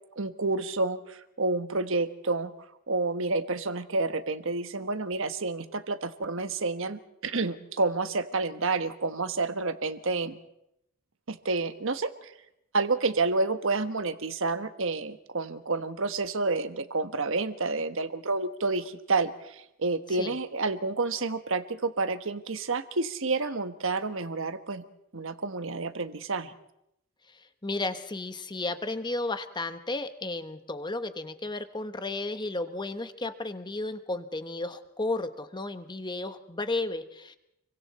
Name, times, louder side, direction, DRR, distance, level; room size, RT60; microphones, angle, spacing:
voice 1, 0.1-2.5 2.9-10.4 11.3-12.3 12.7-24.8 25.1-26.5, right 3 dB, 65° right, 10 dB, 1.3 m, -29 dB
voice 2, 27.3-37.4, left 2 dB, 20° left, 9 dB, 1.2 m, -33 dB
29.0 x 23.5 x 4.3 m, 0.82 s
head